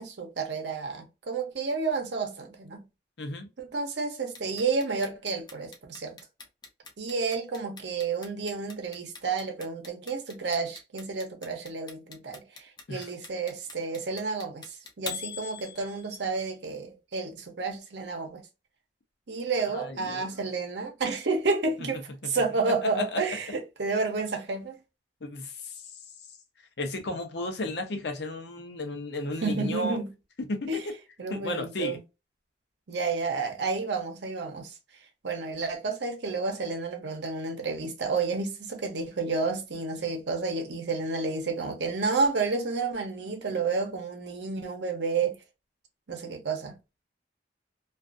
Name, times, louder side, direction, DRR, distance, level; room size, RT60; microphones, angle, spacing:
voice 1, 0.0-2.8 3.6-6.2 7.0-18.5 19.3-24.8 29.4-30.1 30.7-30.8 31.2-32.0 32.9-34.7 35.2-45.4 46.1-46.8, right 4 dB, 70° right, 0.7 m, -30 dB
voice 2, 3.2-3.5 12.9-13.1 19.6-20.4 22.8-23.2 25.2-25.8 26.8-30.0 30.5-30.8 31.3-32.0, left 2 dB, 65° left, 0.6 m, -34 dB
Clock, 4.3-16.3, left 6 dB, 20° left, 0.4 m, -42 dB
2.4 x 2.4 x 2.4 m
head